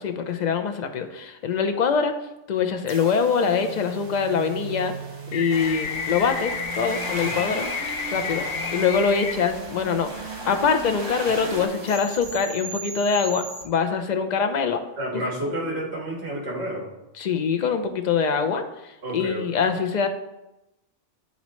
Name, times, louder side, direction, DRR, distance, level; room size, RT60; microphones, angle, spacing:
voice 1, 0.0-2.1 2.5-4.9 5.3-7.7 8.1-8.5 8.7-14.8 17.2-18.6 19.1-20.1, left 6 dB, 50° left, 7 dB, 0.5 m, -24 dB
sound 1, 2.9-13.6, right 2 dB, 75° right, 1.4 m, -38 dB
sound 2, 5.3-9.3, left 6 dB, 80° left, 1.0 m, -31 dB
sound 3, 5.5-11.7, right 1 dB, 25° right, 0.8 m, -36 dB
voice 2, 15.0-16.9 19.0-19.7, right 1 dB, 60° right, -3 dB, 2.1 m, -30 dB
9.2 x 4.1 x 3.1 m, 0.93 s
omnidirectional pair, 1.2 m